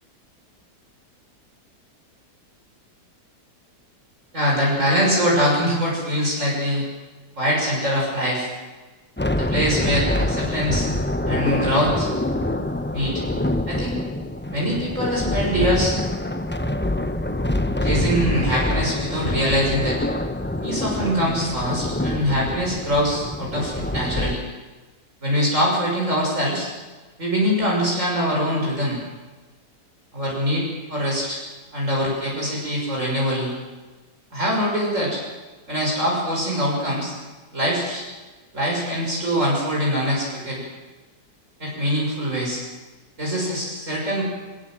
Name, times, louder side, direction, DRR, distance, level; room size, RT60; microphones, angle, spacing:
voice 1, 4.3-6.8 7.4-8.5 9.3-10.9 11.3-12.1 12.9-13.2 13.7-14.0 14.5-16.0 17.8-20.0 20.6-24.4 25.2-26.7 27.2-29.0 30.1-31.4 31.7-33.5 34.3-35.2 35.7-37.1 37.5-38.0 38.5-40.6 41.6-42.6 43.2-44.2, equal, 45° right, -4 dB, 6.9 m, -23 dB
sound 1, 9.2-24.3, left 1 dB, 10° left, 0.6 m, -25 dB
22.5 x 22.0 x 7.7 m, 1.2 s
omnidirectional pair, 1.9 m